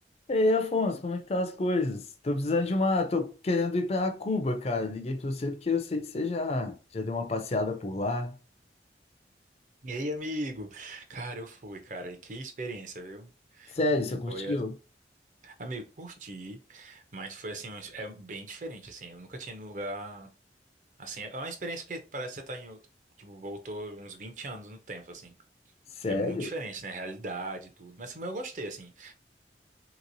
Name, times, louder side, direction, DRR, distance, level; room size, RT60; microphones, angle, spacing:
voice 1, 0.3-8.3 13.7-14.7 26.0-26.5, left 2 dB, 35° left, 0.4 m, -28 dB
voice 2, 9.8-13.8 14.3-14.6 15.4-20.3 21.0-22.8 23.2-25.3 26.1-29.1, right 1 dB, 45° right, 0.6 m, -39 dB
3.2 x 2.9 x 2.6 m
head